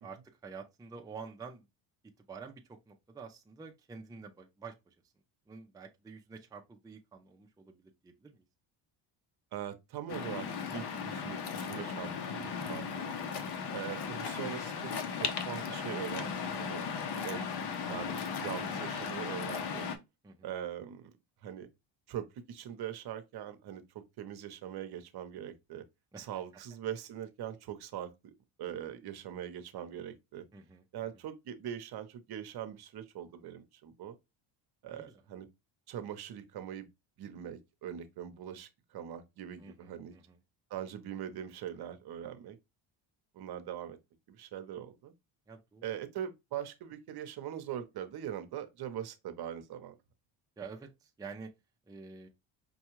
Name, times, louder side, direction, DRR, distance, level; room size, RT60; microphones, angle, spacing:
voice 1, 0.0-1.7 2.3-4.9 5.5-8.4 20.2-20.5 26.1-26.3 30.5-30.8 34.9-35.1 39.6-40.4 45.5-45.9 50.6-51.5 51.9-52.3, right 5 dB, 10° right, 0.5 m, -48 dB
voice 2, 9.5-13.1 13.7-16.8 17.2-17.4 17.8-19.9 20.4-21.1 21.4-21.7 22.1-25.8 26.2-28.3 28.6-30.4 30.9-34.2 34.8-35.5 35.9-36.9 37.2-40.1 40.7-42.6 43.3-44.0 44.3-45.1 45.8-49.9, right 10 dB, 55° right, 0.8 m, -42 dB
Waves surf, 10.1-20.0, left 6 dB, 55° left, 0.9 m, -37 dB
5.4 x 2.3 x 3.0 m
cardioid pair, 105°, 46 cm